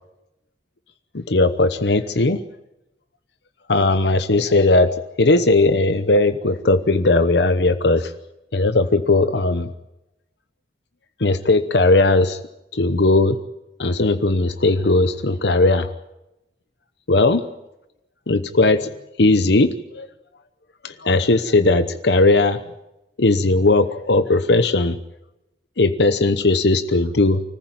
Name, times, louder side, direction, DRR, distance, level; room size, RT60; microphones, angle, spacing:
voice 1, 1.1-2.4 3.7-4.9 5.2-8.1 8.5-9.7 11.2-12.4 12.7-13.4 13.8-15.9 17.1-17.4 18.3-18.9 19.2-20.1 20.8-22.6 23.2-25.0 25.8-27.4, left 2 dB, 70° left, 10 dB, 0.9 m, -18 dB
25.0 x 14.5 x 9.0 m, 0.92 s
head